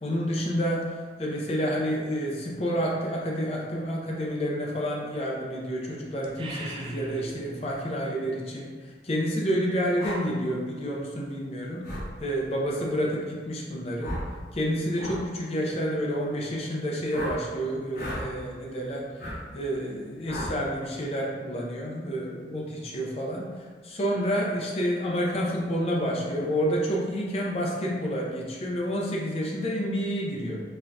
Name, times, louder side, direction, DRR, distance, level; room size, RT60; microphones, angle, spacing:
voice 1, 0.0-11.8 12.2-14.2 14.5-19.0 19.5-30.6, equal, 35° left, -2 dB, 0.5 m, -29 dB
sound 1, 6.2-7.8, right 2 dB, 30° right, 0.3 m, -39 dB
sound 2, 10.0-10.2 11.8-12.1 14.0-14.3 14.9-15.2 17.1-17.4 17.9-18.2 19.2-19.4 20.3-20.5, left 1 dB, 50° left, 1.0 m, -34 dB
4.2 x 2.3 x 2.6 m, 1.6 s
head